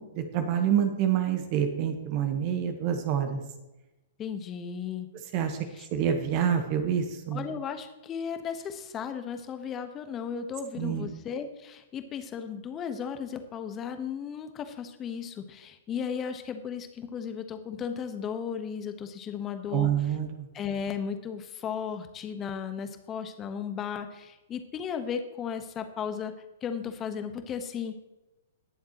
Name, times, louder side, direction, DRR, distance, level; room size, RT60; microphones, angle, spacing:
voice 1, 0.0-3.4 5.3-5.6 5.9-7.4 10.8-11.1 19.7-20.5, right 9 dB, 40° right, 6 dB, 1.3 m, -27 dB
voice 2, 4.2-5.1 5.7-5.9 7.3-20.1 20.5-26.3 26.6-28.0, left 7 dB, 25° left, 8 dB, 1.2 m, -35 dB
19.5 x 7.2 x 3.0 m, 1.0 s
hypercardioid pair, 115°, 0 cm